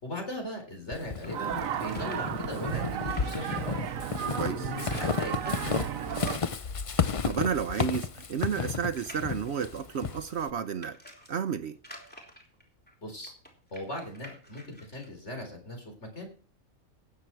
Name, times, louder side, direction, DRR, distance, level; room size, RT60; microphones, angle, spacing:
voice 1, 0.0-3.9 4.5-5.8 13.0-13.3 13.7-16.3, left 1 dB, 60° left, 4.5 m, -39 dB
Walk footsteps / Squeak, 0.9-10.5, left 5 dB, 40° left, 0.5 m, -33 dB
sound 1, 1.2-4.1 4.7-5.7 6.0-6.4 7.1-7.2 7.4-7.5 8.0-11.3 11.8-15.1, equal, 5° left, 3.2 m, -50 dB
sound 2, 1.2-6.4, right 9 dB, 85° right, 1.2 m, -34 dB
voice 2, 7.0-11.0 11.3-11.8, right 7 dB, 60° right, 0.9 m, -32 dB
19.0 x 7.6 x 4.5 m
omnidirectional pair, 1.4 m